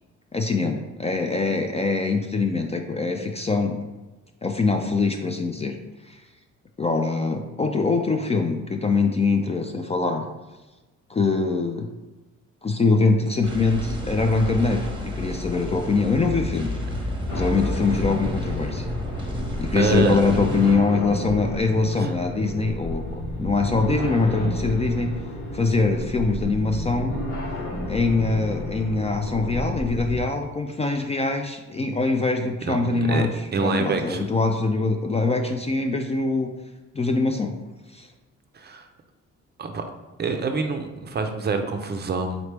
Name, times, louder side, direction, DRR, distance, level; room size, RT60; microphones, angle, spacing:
voice 1, 0.3-3.8 4.4-5.8 6.0-6.2 6.8-10.3 11.1-11.9 12.6-16.7 17.3-18.8 19.6-25.1 25.5-27.1 27.9-33.3 33.6-36.5 36.9-37.5 37.9-38.1, left 3 dB, 20° left, 4 dB, 0.3 m, -23 dB
sound 1, 13.4-20.7, left 1 dB, 15° right, 0.9 m, -31 dB
sound 2, 17.3-30.2, left 1 dB, 85° left, 1.2 m, -31 dB
voice 2, 19.7-20.2 22.0-22.2 32.6-32.8 33.1-33.3 33.5-34.3 38.5-38.9 39.6-39.8 40.2-42.4, right 4 dB, 35° right, 5 dB, 0.5 m, -25 dB
3.9 x 3.0 x 3.3 m, 1.1 s
cardioid pair, 90°, 30 cm